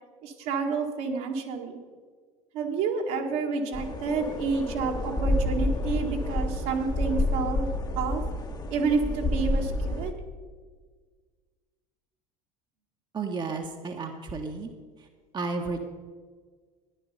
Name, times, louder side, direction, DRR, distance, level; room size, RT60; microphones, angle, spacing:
voice 1, 0.2-1.8 2.5-7.7 8.0-8.2 8.7-10.1, right 4 dB, 55° right, 2 dB, 1.8 m, -29 dB
sound 1, 3.7-10.1, left 1 dB, 20° left, 1.3 m, -29 dB
voice 2, 13.1-14.7 15.0-15.1 15.3-15.8, right 4 dB, 25° right, 3 dB, 1.2 m, -32 dB
13.5 x 11.0 x 5.4 m, 1.5 s
figure-of-eight pair, 70°, 19 cm